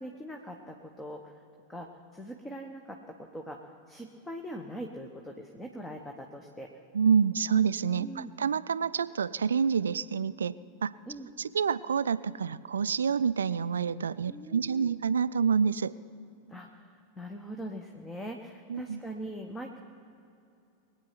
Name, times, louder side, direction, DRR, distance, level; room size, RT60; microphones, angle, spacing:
voice 1, 0.0-1.4 1.7-3.6 3.9-6.7 8.0-8.3 11.1-11.3 14.3-15.0 16.5-19.8, equal, 10° left, 2 dB, 1.1 m, -42 dB
voice 2, 6.9-10.6 10.8-10.9 11.4-15.9 18.7-19.0, right 6 dB, 70° right, 17 dB, 0.4 m, -27 dB
22.5 x 8.9 x 5.8 m, 2.6 s
figure-of-eight pair, 90°, 0 cm